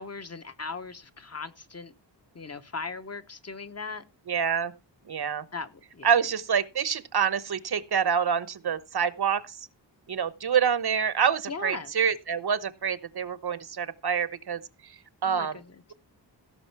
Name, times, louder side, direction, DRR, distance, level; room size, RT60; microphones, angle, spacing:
voice 1, 0.0-1.9 2.3-4.0 5.5-6.1 11.5-11.9 15.2-15.7, left 4 dB, 35° left, 1.0 m, -38 dB
voice 2, 4.3-4.7 5.1-5.4 6.0-9.6 10.1-14.6 15.2-15.6, right 7 dB, 60° right, 1.0 m, -26 dB
16.5 x 6.5 x 4.5 m
wide cardioid pair, 145°, 44 cm